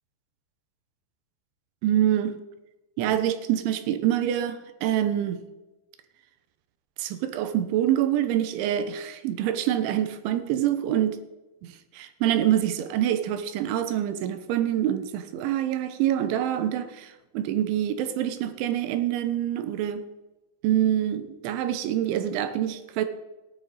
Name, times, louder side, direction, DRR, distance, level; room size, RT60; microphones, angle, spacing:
voice 1, 1.8-2.4 3.0-5.4 7.0-11.2 11.6-20.1 20.6-23.1, right 11 dB, 85° right, 3.4 m, -26 dB
15.5 x 11.0 x 4.1 m
omnidirectional pair, 5.3 m